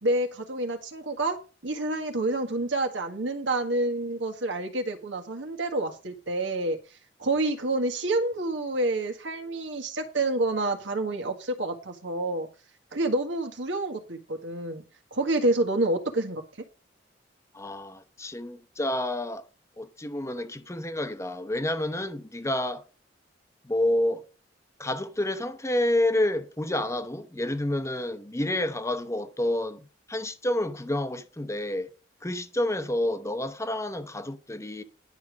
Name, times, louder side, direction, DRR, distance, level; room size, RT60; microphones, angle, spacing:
voice 1, 0.0-1.4 1.6-6.8 7.2-12.5 12.9-14.8 15.1-16.4, right 2 dB, 85° right, 1.7 m, -28 dB
voice 2, 17.5-19.4 19.8-22.8 23.6-24.2 24.8-31.9 32.2-34.8, left 1 dB, 15° left, 0.8 m, -29 dB
11.0 x 5.1 x 6.3 m
head